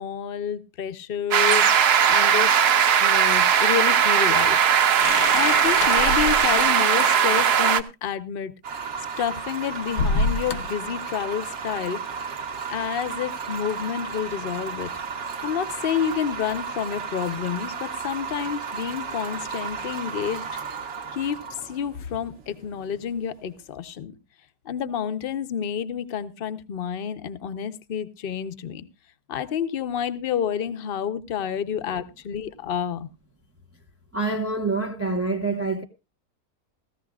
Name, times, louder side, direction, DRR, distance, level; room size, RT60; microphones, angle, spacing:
voice 1, 0.0-2.6 3.0-4.6 5.3-8.5 9.2-12.0 12.7-14.9 15.4-20.8 21.1-24.1 24.6-28.9 29.3-33.1, left 8 dB, 45° left, 0.8 m, -29 dB
sound 1, 1.3-7.8, right 8 dB, 75° right, 1.4 m, -19 dB
sound 2, 5.0-6.7 9.3-10.8, left 3 dB, 90° left, 1.5 m, -27 dB
sound 3, 8.6-23.6, right 6 dB, 50° right, 1.3 m, -34 dB
voice 2, 34.1-35.8, right 3 dB, 15° right, 0.4 m, -26 dB
17.5 x 14.0 x 2.4 m
omnidirectional pair, 1.7 m